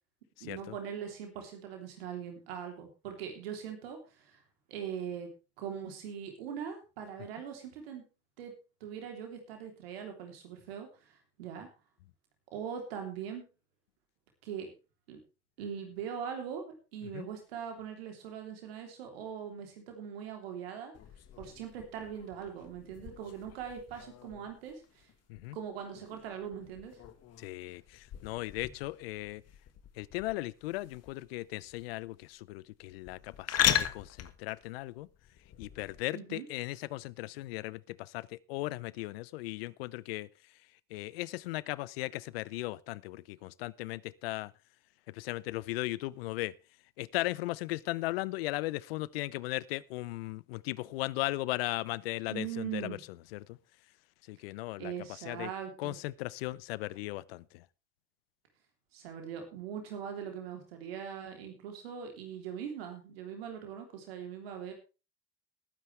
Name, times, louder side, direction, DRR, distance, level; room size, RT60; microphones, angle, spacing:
voice 1, 0.4-4.4 4.7-5.3 5.6-8.0 8.4-8.5 8.8-11.7 12.5-13.4 14.4-14.7 15.1-15.2 15.6-20.9 21.4-25.1 25.5-27.0 36.1-36.5 52.2-53.0 54.8-56.0 58.9-64.7, right 8 dB, 90° right, 3.3 m, -41 dB
sound 1, 20.9-36.0, left 10 dB, 60° left, 1.6 m, -38 dB
voice 2, 27.4-29.4 30.0-35.1 35.6-40.3 40.9-44.5 45.1-46.5 47.0-53.0 53.3-53.6 54.3-54.9 55.3-55.5 55.8-57.6, left 19 dB, 90° left, 0.6 m, -37 dB
20.0 x 9.7 x 3.3 m
hypercardioid pair, 60°, 29 cm